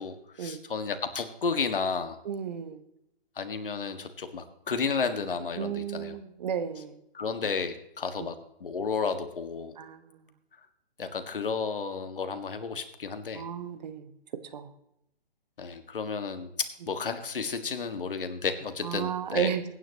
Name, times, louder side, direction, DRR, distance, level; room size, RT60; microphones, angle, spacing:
voice 1, 0.0-2.2 3.4-6.2 7.2-8.4 8.6-9.7 11.0-13.4 15.6-19.5, left 5 dB, 60° left, 9 dB, 1.7 m, -32 dB
voice 2, 2.2-2.8 5.6-7.0 8.2-8.3 9.8-10.2 13.3-14.1 14.5-14.7 18.8-19.6, right 8 dB, 45° right, 10 dB, 1.2 m, -33 dB
23.0 x 9.8 x 2.9 m, 0.80 s
figure-of-eight pair, 135°, 31 cm